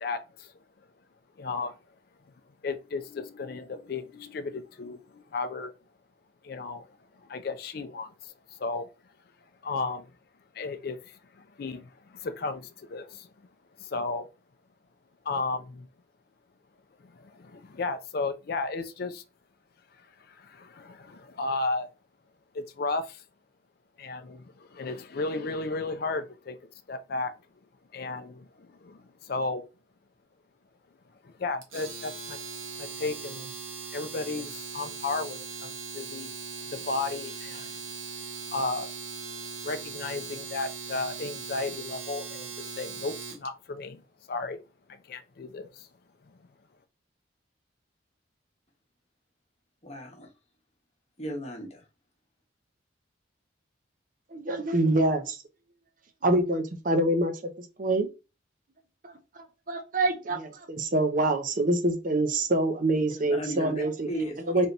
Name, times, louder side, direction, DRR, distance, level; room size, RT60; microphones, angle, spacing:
voice 1, 0.0-0.5 1.4-1.7 2.6-5.7 6.4-6.8 7.3-8.9 9.6-10.1 10.5-13.3 13.8-14.3 15.3-15.9 17.0-19.2 20.3-21.9 22.5-23.2 24.0-26.6 26.9-27.3 27.9-29.6 31.2-32.4 32.8-33.5 33.9-36.3 36.7-37.7 38.5-38.9 39.6-42.5 42.8-44.0 44.3-44.6 44.9-45.9, left 3 dB, 50° left, 0.4 m, -34 dB
Domestic sounds home sounds, 31.6-43.5, right 5 dB, 90° right, 1.1 m, -39 dB
voice 2, 49.8-50.3 51.2-51.8 63.3-64.7, equal, 35° left, 1.0 m, -35 dB
voice 3, 54.3-55.4 56.2-57.3 57.8-58.1 59.0-64.1 64.5-64.7, right 2 dB, 40° right, 0.7 m, -26 dB
3.4 x 2.8 x 3.9 m
head